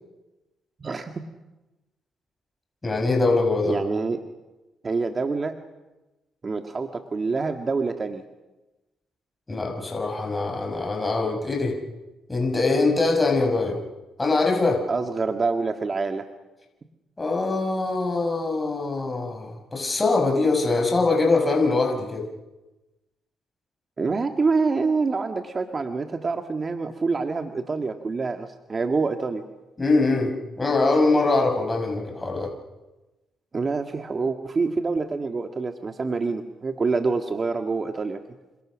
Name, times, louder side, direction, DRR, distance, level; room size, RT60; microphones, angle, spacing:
voice 1, 0.8-1.2 3.7-4.2 4.8-5.6 6.4-8.2 14.9-16.2 24.0-29.4 33.5-38.2, right 4 dB, 35° right, 5 dB, 1.8 m, -26 dB
voice 2, 2.8-3.8 9.5-11.8 12.3-13.8 14.2-14.8 17.2-22.3 29.8-32.5, left 3 dB, 20° left, 2 dB, 6.3 m, -23 dB
28.5 x 26.0 x 6.4 m, 1.1 s
cardioid pair, 90°, 0 cm